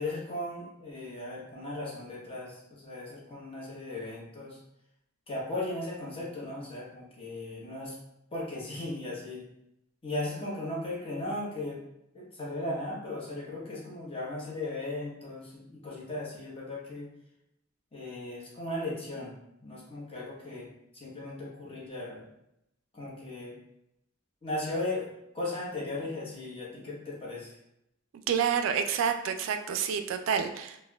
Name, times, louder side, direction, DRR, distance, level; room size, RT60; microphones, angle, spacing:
voice 1, 0.0-4.6 5.3-7.9 8.3-9.5 10.0-11.8 12.1-17.1 17.9-19.3 19.6-22.3 22.9-23.6 24.4-27.6, left 2 dB, 30° left, -5 dB, 0.9 m, -37 dB
voice 2, 28.3-30.9, right 7 dB, 80° right, 7 dB, 0.3 m, -28 dB
4.2 x 2.1 x 2.2 m, 0.83 s
head